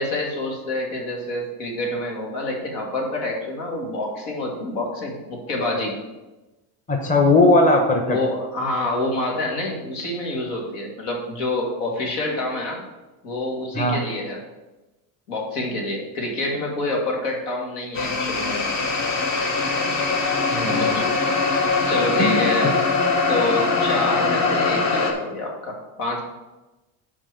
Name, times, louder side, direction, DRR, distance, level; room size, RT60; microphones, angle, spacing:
voice 1, 0.0-5.9 8.0-12.8 13.2-14.4 15.3-18.7 20.8-21.1 21.9-22.8 23.3-26.2, left 2 dB, 80° left, -1 dB, 2.5 m, -27 dB
voice 2, 6.9-8.2 13.7-14.0 20.5-20.9 22.2-22.4, left 2 dB, 20° left, 2 dB, 1.0 m, -18 dB
sound 1, 17.9-25.1, left 4 dB, 40° left, 1.4 m, -22 dB
7.2 x 4.6 x 6.9 m, 1.1 s
cardioid pair, 135°, 43 cm